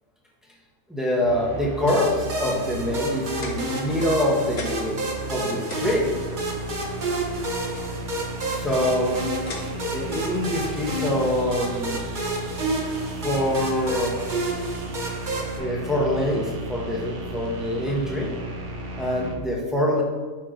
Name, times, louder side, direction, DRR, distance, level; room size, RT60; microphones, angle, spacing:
voice 1, 0.9-5.0 5.3-6.1 8.4-9.1 9.8-12.0 13.2-14.2 15.6-18.3 19.0-20.0, left 1 dB, ahead, -3 dB, 1.2 m, -25 dB
sound 1, 1.2-19.4, right 1 dB, 75° right, 1.3 m, -35 dB
sound 2, 1.9-15.6, right 2 dB, 45° right, 1.1 m, -30 dB
sound 3, 3.4-4.2 4.6-5.0 5.3-5.4 5.7-7.2 8.3-8.7 9.5-10.1 10.6-10.8 11.7-11.8, left 3 dB, 60° left, 1.3 m, -38 dB
5.8 x 4.8 x 5.1 m, 1.3 s
omnidirectional pair, 1.2 m